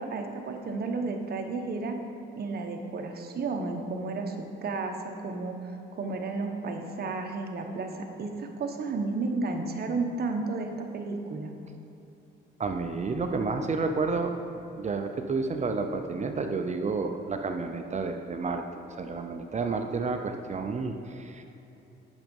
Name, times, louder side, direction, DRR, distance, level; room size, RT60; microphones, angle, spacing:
voice 1, 0.0-2.0 2.3-11.5, right 3 dB, 50° right, 3 dB, 1.1 m, -32 dB
voice 2, 12.6-14.3 14.7-21.4, right 4 dB, 35° right, 5 dB, 0.6 m, -30 dB
8.9 x 6.4 x 5.4 m, 2.9 s
cardioid pair, 90°, 20 cm